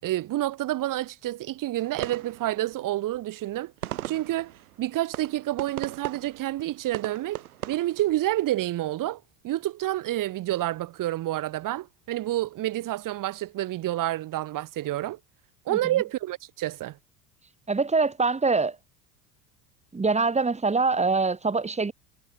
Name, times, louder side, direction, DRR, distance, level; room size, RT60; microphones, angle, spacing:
voice 1, 0.0-3.7 4.1-15.2 15.7-17.0, right 15 dB, 45° right, 5.4 m, -29 dB
sound 1, 1.8-8.6, right 13 dB, 65° right, 6.7 m, -39 dB
voice 2, 15.7-16.0 17.7-18.8 19.9-21.9, right 4 dB, 15° right, 3.4 m, -24 dB
figure-of-eight pair, 70°, 46 cm